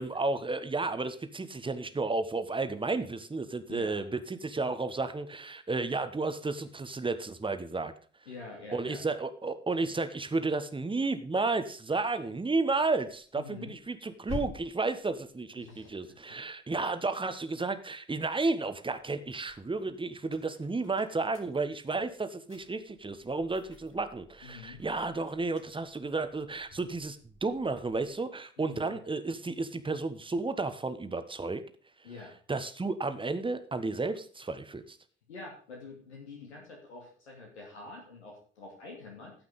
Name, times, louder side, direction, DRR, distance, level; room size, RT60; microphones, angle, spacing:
voice 1, 0.0-7.9 8.7-31.6 32.5-35.0, right 3 dB, 15° right, 10 dB, 1.4 m, -32 dB
voice 2, 3.7-4.0 8.3-9.1 13.4-13.7 15.6-15.9 24.4-24.8 28.6-29.0 32.0-32.3 35.3-39.3, left 3 dB, 80° left, 0 dB, 2.6 m, -46 dB
sound 1, 11.4-17.9 18.4-28.2, left 3 dB, 50° left, 4.7 m, -50 dB
15.0 x 5.9 x 5.2 m, 0.44 s
figure-of-eight pair, 45°, 33 cm